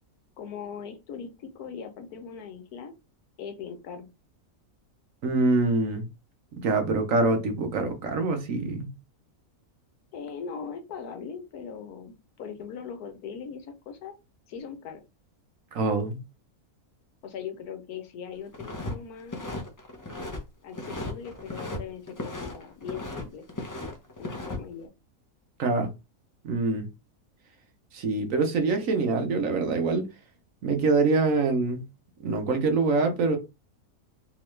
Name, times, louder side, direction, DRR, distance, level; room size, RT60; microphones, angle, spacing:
voice 1, 0.4-2.9 3.4-4.1 10.1-14.1 14.5-15.0 17.2-19.5 20.6-23.7 24.2-24.9, left 6 dB, 90° left, 1.3 m, -40 dB
voice 2, 5.2-6.1 6.6-8.9 15.7-16.2 25.6-25.9 26.4-26.9 27.9-30.1 30.6-31.8 32.2-33.4, right 3 dB, 65° right, 1.2 m, -25 dB
sound 1, 18.5-18.9 19.2-20.4 20.7-21.8 22.1-23.2 23.5-24.6, left 2 dB, 25° left, 0.4 m, -36 dB
3.5 x 3.0 x 3.1 m
omnidirectional pair, 1.6 m